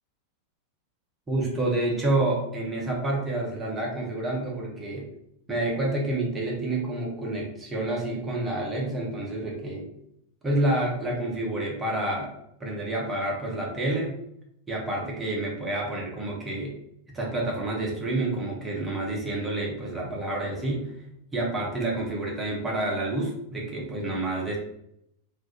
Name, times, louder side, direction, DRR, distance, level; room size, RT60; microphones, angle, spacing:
voice 1, 1.3-5.1 5.5-9.9 10.4-12.3 12.6-14.1 14.7-16.7 17.1-20.9 21.3-24.6, right 2 dB, 15° right, -3 dB, 0.7 m, -28 dB
2.3 x 2.1 x 2.7 m, 0.77 s
figure-of-eight pair, 90°, 0 cm